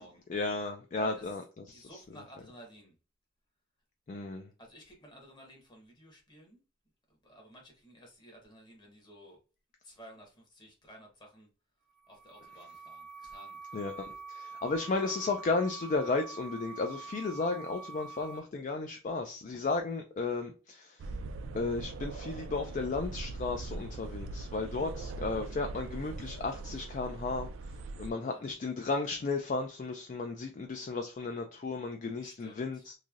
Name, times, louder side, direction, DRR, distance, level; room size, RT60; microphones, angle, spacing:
voice 1, 0.3-1.4 1.7-1.8 4.1-4.5 13.7-21.0 21.5-27.5 28.0-32.9, left 3 dB, 40° left, 0.3 m, -34 dB
voice 2, 1.0-1.4 1.7-2.9 4.6-6.6 7.1-9.4 9.8-11.5 12.1-13.8 28.1-28.5 32.2-32.9, right 1 dB, 20° left, 1.0 m, -54 dB
sound 1, 11.9-18.4, right 5 dB, 55° right, 0.7 m, -46 dB
sound 2, 21.0-28.1, right 3 dB, 80° right, 0.3 m, -41 dB
3.1 x 2.6 x 2.4 m
head